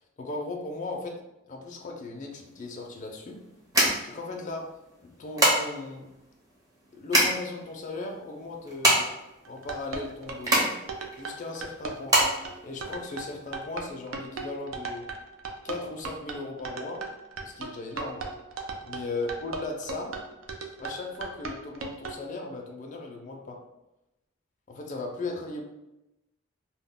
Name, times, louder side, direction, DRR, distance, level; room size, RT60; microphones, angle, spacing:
voice 1, 0.2-1.1 1.5-3.4 4.0-4.6 5.2-6.1 6.9-9.1 9.5-10.7 11.2-12.2 12.6-15.0 15.6-17.0 17.4-18.2 18.8-20.1 20.8-23.6 24.7-25.6, left 3 dB, 40° left, 1 dB, 0.3 m, -37 dB
sound 1, 2.3-13.5, right 1 dB, 20° right, 0.6 m, -27 dB
sound 2, 9.4-22.2, right 4 dB, 75° right, 0.4 m, -37 dB
2.1 x 2.1 x 3.6 m, 0.93 s
head